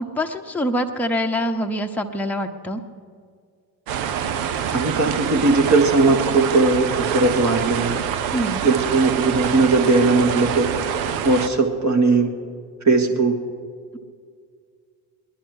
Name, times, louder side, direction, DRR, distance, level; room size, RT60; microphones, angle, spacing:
voice 1, 0.0-2.8 8.3-8.6, equal, 5° left, 3 dB, 1.0 m, -25 dB
sound 1, 3.9-11.5, right 8 dB, 70° right, 0.9 m, -25 dB
voice 2, 4.7-8.0 8.6-10.7 11.2-12.3 12.8-13.4, right 3 dB, 35° right, 3 dB, 1.6 m, -18 dB
20.5 x 11.0 x 4.9 m, 2.1 s
figure-of-eight pair, 40°, 49 cm